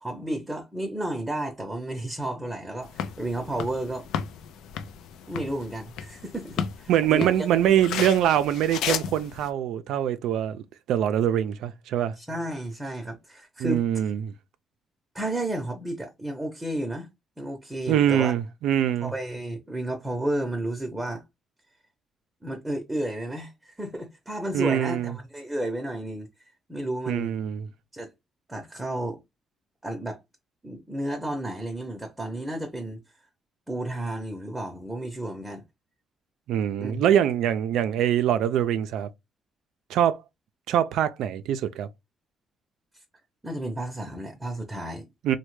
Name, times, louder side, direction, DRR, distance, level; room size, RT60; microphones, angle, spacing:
voice 1, 0.0-4.2 5.3-7.5 12.2-13.8 15.1-17.1 17.4-18.3 19.0-21.2 22.4-26.3 26.7-27.4 27.9-28.1 28.5-29.2 29.8-30.2 30.6-33.0 33.7-35.6 36.8-37.0 43.4-45.1, right 1 dB, 10° right, 0.7 m, -32 dB
sound 1, 2.8-9.5, left 8 dB, 85° left, 0.3 m, -34 dB
voice 2, 6.9-10.6 10.9-12.1 13.6-14.3 17.9-19.1 24.5-25.1 27.1-27.7 36.5-39.1 39.9-40.2 40.7-41.9 45.2-45.4, right 10 dB, 85° right, 0.3 m, -24 dB
3.1 x 2.1 x 3.1 m
cardioid pair, 90°, 0 cm